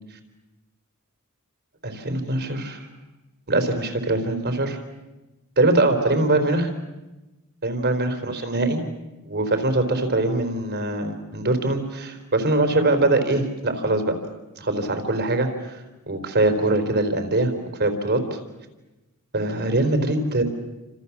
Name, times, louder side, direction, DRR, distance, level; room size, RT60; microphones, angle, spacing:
voice 1, 1.8-2.9 3.5-4.8 5.6-6.7 7.6-8.8 9.3-14.1 14.6-15.7 16.1-17.5 17.8-18.4 19.3-20.4, right 2 dB, 50° right, 7 dB, 4.0 m, -22 dB
29.5 x 27.0 x 7.3 m, 1.1 s
head